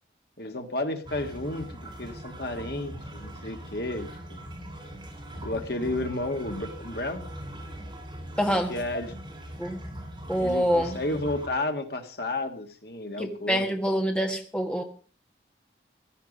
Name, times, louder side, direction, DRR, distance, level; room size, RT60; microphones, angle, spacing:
voice 1, 0.4-4.5 5.4-7.3 8.7-9.1 10.4-13.8, left 2 dB, 60° left, 6 dB, 1.8 m, -32 dB
sound 1, 1.1-11.5, right 1 dB, 25° right, 4.4 m, -41 dB
voice 2, 8.4-8.7 9.6-9.8 10.3-11.0 13.2-14.8, equal, 5° left, 3 dB, 1.5 m, -26 dB
16.5 x 12.0 x 5.4 m, 0.42 s
head